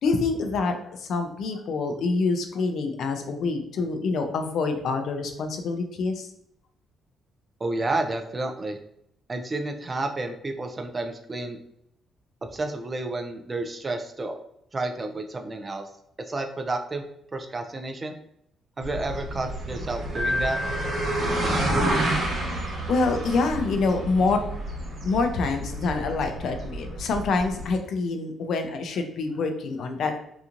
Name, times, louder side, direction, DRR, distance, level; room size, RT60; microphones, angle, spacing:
voice 1, 0.0-6.3 22.9-24.4 25.0-30.2, left 3 dB, 70° left, 6 dB, 0.4 m, -26 dB
voice 2, 7.6-8.8 9.3-11.6 12.4-14.3 14.7-15.9 16.3-17.1 17.3-18.1 18.8-20.6, right 2 dB, 30° right, 5 dB, 0.3 m, -30 dB
sound 1, 18.8-27.8, right 1 dB, 60° right, 1.1 m, -30 dB
Keyboard (musical), 20.1-22.0, left 1 dB, 45° right, 0.8 m, -31 dB
2.8 x 2.4 x 2.5 m, 0.74 s
cardioid pair, 90°, 0 cm